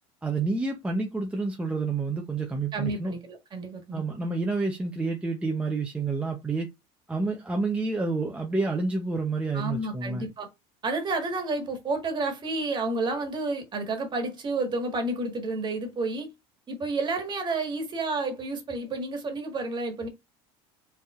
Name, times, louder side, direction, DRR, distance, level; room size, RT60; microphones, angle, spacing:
voice 1, 0.2-3.1 3.9-6.7 7.1-10.3, right 3 dB, 10° right, 0.7 m, -29 dB
voice 2, 2.7-4.0 9.5-10.5 10.8-16.3 16.7-20.1, right 3 dB, 35° right, 1.6 m, -30 dB
5.0 x 3.4 x 2.5 m
supercardioid pair, 110°, 14 cm